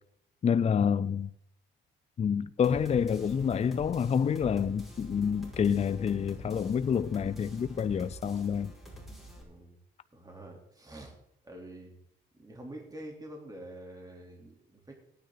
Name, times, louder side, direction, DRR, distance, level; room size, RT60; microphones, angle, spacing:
voice 1, 0.4-1.3 2.2-8.7, left 7 dB, 35° left, 0.5 m, -28 dB
sound 1, 2.6-9.4, right 1 dB, ahead, 5.7 m, -47 dB
voice 2, 9.3-9.8 10.1-11.2 11.4-12.0 12.3-14.9, right 1 dB, 20° right, 3.4 m, -46 dB
17.5 x 9.5 x 4.0 m
cardioid pair, 90°, 20 cm